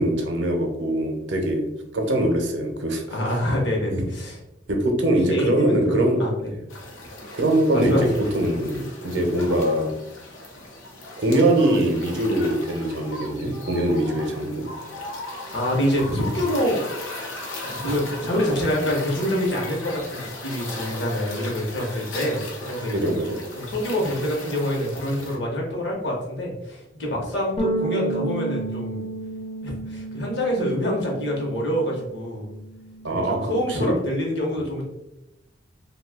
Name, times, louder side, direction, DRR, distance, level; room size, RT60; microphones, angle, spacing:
voice 1, 0.0-1.7 1.9-3.0 3.9-4.1 4.7-6.6 7.3-8.1 8.3-9.9 11.2-14.7 22.9-23.4 33.0-33.9, right 1 dB, 65° right, 2 dB, 0.6 m, -22 dB
voice 2, 3.1-4.4 5.3-6.5 7.7-8.1 15.5-16.8 17.6-23.1 23.5-29.0 29.6-32.5 33.0-34.8, equal, 60° left, -1 dB, 0.9 m, -26 dB
sound 1, 6.7-25.4, left 2 dB, 90° left, 0.7 m, -37 dB
sound 2, 27.6-32.1 32.4-33.8, right 2 dB, 30° left, 0.5 m, -32 dB
2.6 x 2.3 x 3.4 m, 0.91 s
head